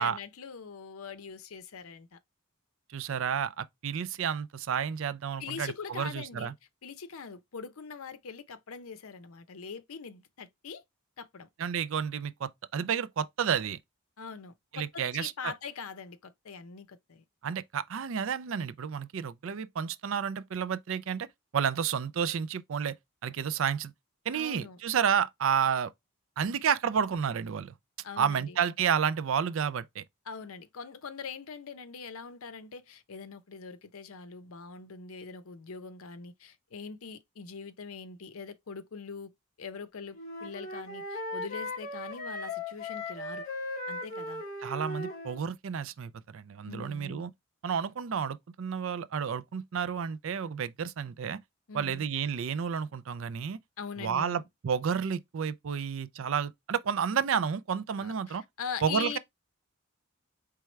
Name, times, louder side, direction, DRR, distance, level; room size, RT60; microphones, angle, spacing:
voice 1, 0.0-2.2 5.4-6.5 6.8-10.8 11.2-11.5 14.2-17.2 24.3-24.8 28.0-28.6 30.3-39.3 39.6-43.4 43.9-44.4 46.7-47.2 51.7-52.1 53.8-54.4 58.0-59.2, left 6 dB, 75° left, 0.6 m, -42 dB
voice 2, 2.9-6.5 11.6-13.8 14.7-15.5 17.4-21.3 21.5-22.9 23.2-23.9 24.3-25.9 26.4-27.7 28.2-30.0 44.6-47.3 47.6-51.4 51.7-53.6 54.0-58.4 58.8-59.2, right 7 dB, 65° right, 0.4 m, -31 dB
Wind instrument woodwind instrument, 40.1-45.4, left 2 dB, 35° left, 2.2 m, -38 dB
4.6 x 3.4 x 3.1 m
head